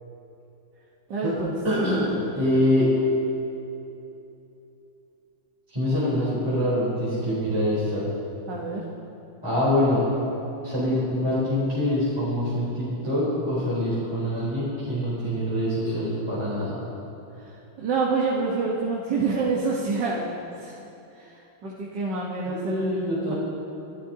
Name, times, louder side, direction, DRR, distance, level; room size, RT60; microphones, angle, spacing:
voice 1, 1.1-1.6 8.5-8.8 17.4-20.8 21.1-23.0, right 4 dB, 65° right, -4 dB, 1.8 m, -27 dB
voice 2, 1.6-2.9 5.7-8.1 9.4-10.0 10.6-16.8 22.4-23.3, left 1 dB, 15° right, -11 dB, 3.5 m, -25 dB
26.0 x 12.0 x 2.8 m, 2.9 s
omnidirectional pair, 2.2 m